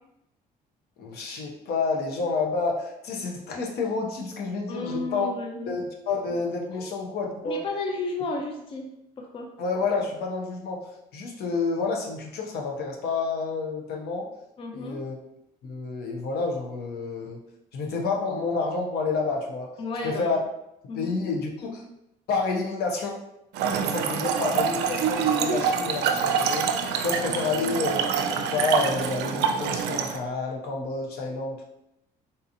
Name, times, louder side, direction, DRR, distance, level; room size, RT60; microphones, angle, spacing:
voice 1, 1.0-5.4 5.7-7.6 9.6-14.3 14.7-15.2 15.6-17.4 17.7-19.7 20.0-20.4 20.9-21.8 22.3-23.2 23.8-31.6, left 4 dB, 70° left, 0 dB, 0.8 m, -29 dB
voice 2, 4.7-5.8 6.7-6.9 7.4-8.9 9.2-9.5 14.6-15.0 19.8-20.3 20.9-21.2, left 2 dB, 30° left, 1 dB, 0.5 m, -33 dB
Trickle dribble / Fill (with liquid), 23.5-30.2, right 6 dB, 80° right, 0.4 m, -26 dB
3.9 x 2.7 x 2.6 m, 0.83 s
cardioid pair, 110°, 17 cm